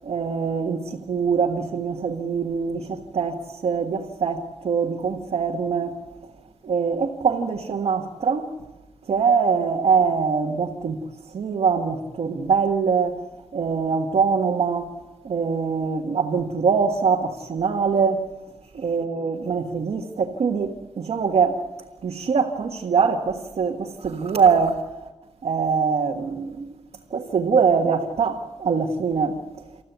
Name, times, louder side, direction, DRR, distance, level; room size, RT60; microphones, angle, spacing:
voice 1, 0.0-5.9 6.6-8.5 9.1-11.0 11.3-13.2 13.5-14.9 15.2-18.2 18.7-21.6 22.0-25.0 25.4-26.8 27.1-29.7, right 5 dB, 85° right, 1.6 m, -23 dB
28.5 x 15.0 x 8.2 m
wide cardioid pair, 120°, 10 cm